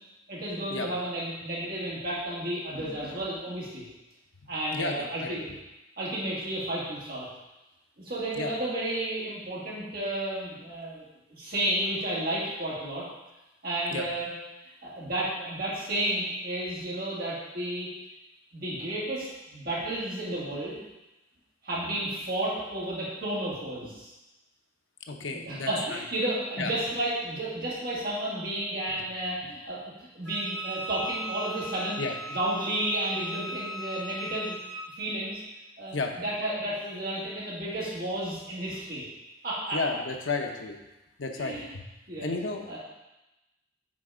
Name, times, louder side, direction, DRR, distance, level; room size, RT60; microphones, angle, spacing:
voice 1, 0.3-3.8 4.5-5.6 6.0-7.3 8.0-11.0 11.3-13.0 13.6-14.3 14.6-17.9 18.5-20.8 21.6-24.1 25.3-29.8 30.1-32.0 32.3-34.6 34.9-35.4 35.8-39.0 39.4-39.8 41.4-41.7 42.1-42.3 42.7-42.8, right 1 dB, 50° right, -7 dB, 2.1 m, -32 dB
voice 2, 4.7-5.4 8.4-8.5 13.9-14.1 25.1-26.0 26.6-26.7 32.0-32.1 35.9-36.1 39.7-40.7 41.2-41.8 42.2-42.8, left 3 dB, 75° left, 3 dB, 0.7 m, -32 dB
Wind instrument woodwind instrument, 30.2-34.9, right 1 dB, 65° right, 2.4 m, -39 dB
6.1 x 4.2 x 4.9 m, 1.0 s
head